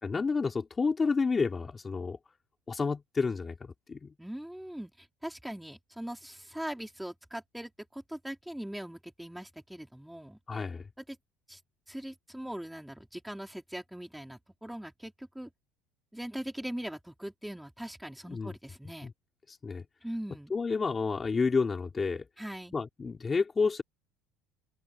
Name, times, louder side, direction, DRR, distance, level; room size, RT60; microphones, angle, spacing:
voice 1, 0.0-2.2 2.7-4.1 10.5-10.9 18.3-18.5 19.0-19.1 19.5-19.8 20.5-22.3 22.7-23.8, left 4 dB, 20° left, 3.5 m, -30 dB
voice 2, 4.2-10.4 11.1-11.2 11.5-11.6 11.9-15.5 16.1-19.1 20.0-20.5 22.4-22.7, right 1 dB, 5° right, 4.4 m, -41 dB
open air
cardioid pair, 130°, 0 cm